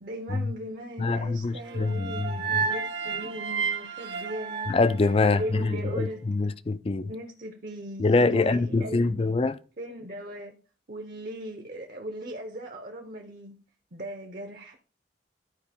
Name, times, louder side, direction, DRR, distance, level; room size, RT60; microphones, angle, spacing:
voice 1, 0.0-4.7 5.2-6.2 7.1-9.3 9.8-10.5 10.9-13.6 13.9-14.8, equal, 50° right, 0.8 m, -38 dB
voice 2, 1.0-2.7 4.7-7.1 8.0-9.6, left 3 dB, 30° left, 0.4 m, -25 dB
sound 1, 1.6-5.9, right 5 dB, 80° right, 1.1 m, -32 dB
12.0 x 5.0 x 3.5 m
head